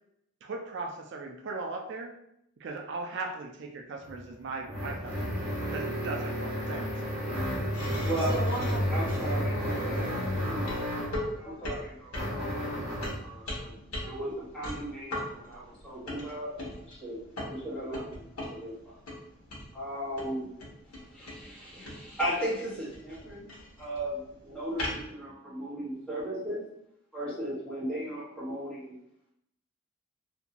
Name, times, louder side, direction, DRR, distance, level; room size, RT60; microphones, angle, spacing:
voice 1, 0.4-2.1 2.6-5.4 5.7-6.9, right 3 dB, 55° right, 2 dB, 0.3 m, -38 dB
sound 1, 4.0-11.2 12.1-13.2, equal, 30° right, 1.1 m, -31 dB
sound 2, 7.7-25.1, left 1 dB, 85° left, 0.9 m, -41 dB
voice 2, 8.2-9.0 9.3-10.4 10.9-11.8 12.3-12.7, equal, 40° left, -1 dB, 0.4 m, -40 dB
voice 3, 8.9-10.1 10.5-10.6 11.3-17.2 17.5-19.0 19.7-20.5 21.1-23.5 23.8-26.6 27.1-29.0, right 1 dB, 5° left, -9 dB, 1.0 m, -37 dB
2.5 x 2.2 x 2.8 m, 0.77 s
head